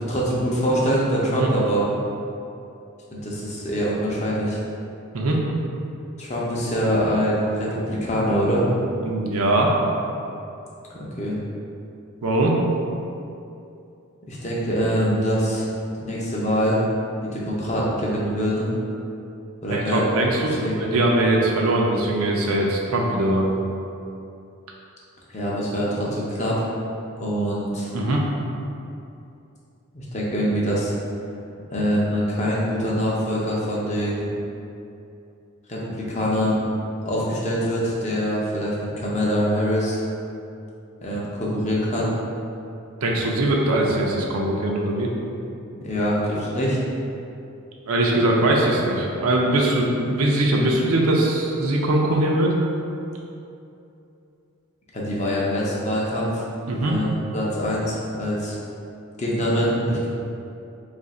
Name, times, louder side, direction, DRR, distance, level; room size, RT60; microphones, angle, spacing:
voice 1, 0.1-1.8 3.1-4.6 6.2-8.7 10.9-11.4 14.3-15.7 16.0-16.8 17.2-18.7 19.6-20.2 20.6-20.8 25.3-26.7 27.2-27.9 29.9-30.9 31.7-34.3 35.7-36.6 37.1-40.0 41.0-42.1 45.8-46.8 54.9-56.5 56.8-58.6 59.2-60.1, equal, 30° left, -5 dB, 0.6 m, -24 dB
voice 2, 9.0-9.7 12.2-12.6 19.7-23.5 27.9-28.2 43.0-45.1 47.9-52.6 56.7-57.0, right 1 dB, 80° right, -1 dB, 0.5 m, -21 dB
2.8 x 2.5 x 4.1 m, 2.7 s
head